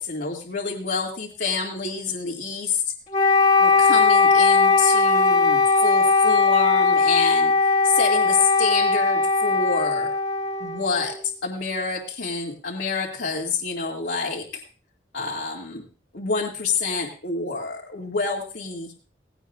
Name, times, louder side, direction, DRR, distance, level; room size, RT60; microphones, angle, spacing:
voice 1, 0.0-2.8 3.6-10.1 10.6-14.6 15.1-15.8 16.1-18.9, left 4 dB, 70° left, -4 dB, 2.2 m, -28 dB
Wind instrument woodwind instrument, 3.1-11.2, left 4 dB, 45° left, 1.9 m, -19 dB
18.5 x 17.0 x 2.4 m, 0.40 s
head